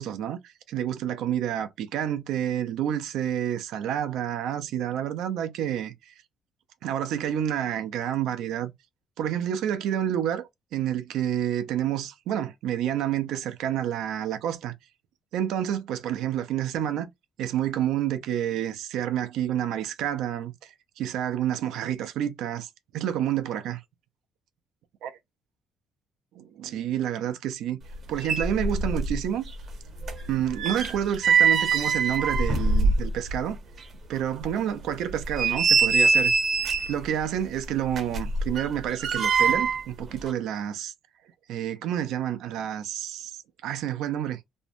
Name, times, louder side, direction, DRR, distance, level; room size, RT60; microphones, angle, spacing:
voice 1, 0.0-6.1 6.8-8.7 9.2-14.7 15.3-17.1 17.4-23.8 25.0-25.1 26.4-27.8 28.1-29.4 30.3-33.6 34.1-36.3 36.9-40.9 41.5-44.4, right 10 dB, 80° right, 0.5 m, -29 dB
sound 1, 27.9-28.0 28.2-29.2 29.5-33.4 33.8-33.9 34.4-34.5 35.1-37.0 37.9-39.9 40.2-40.3, right 4 dB, 40° right, 0.8 m, -23 dB
2.6 x 2.1 x 2.6 m
cardioid pair, 150°, 0 cm